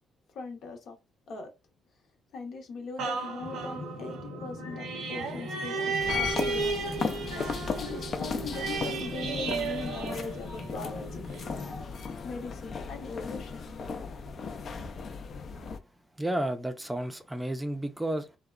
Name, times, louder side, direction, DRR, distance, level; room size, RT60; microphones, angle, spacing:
voice 1, 0.3-1.0 1.3-1.5 2.3-7.0 7.8-11.2 12.2-13.6, left 4 dB, 70° left, 0.8 m, -40 dB
sound 1, 3.0-10.8 11.3-11.4, right 5 dB, 85° right, 0.5 m, -34 dB
sound 2, 3.4-11.8, left 2 dB, 90° left, 1.1 m, -42 dB
sound 3, 6.0-15.8, left 5 dB, 50° left, 0.4 m, -36 dB
voice 2, 16.2-18.4, right 1 dB, 10° right, 0.4 m, -32 dB
2.8 x 2.1 x 2.4 m
cardioid pair, 90°, 0 cm